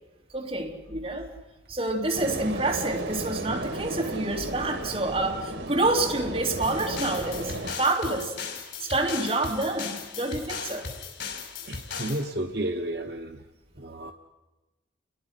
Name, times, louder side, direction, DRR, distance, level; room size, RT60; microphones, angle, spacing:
voice 1, 0.3-1.3 1.7-8.3 8.8-10.9, right 2 dB, 30° right, -1 dB, 3.4 m, -28 dB
sound 1, 2.1-7.7, right 2 dB, 75° right, 2.6 m, -34 dB
sound 2, 6.6-12.3, left 5 dB, 85° left, 5.4 m, -37 dB
voice 2, 11.6-13.4 13.8-14.1, right 1 dB, 60° right, 3 dB, 1.1 m, -32 dB
29.5 x 22.0 x 5.9 m, 1.1 s
head